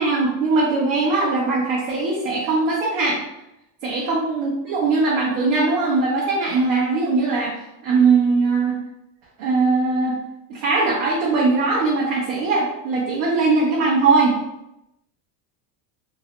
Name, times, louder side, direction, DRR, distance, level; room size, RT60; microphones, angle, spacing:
voice 1, 0.0-3.2 3.8-7.5 7.8-8.8 9.4-10.1 10.5-14.4, right 3 dB, 60° right, -4 dB, 0.8 m, -20 dB
2.9 x 2.7 x 3.1 m, 0.88 s
cardioid pair, 170°, 49 cm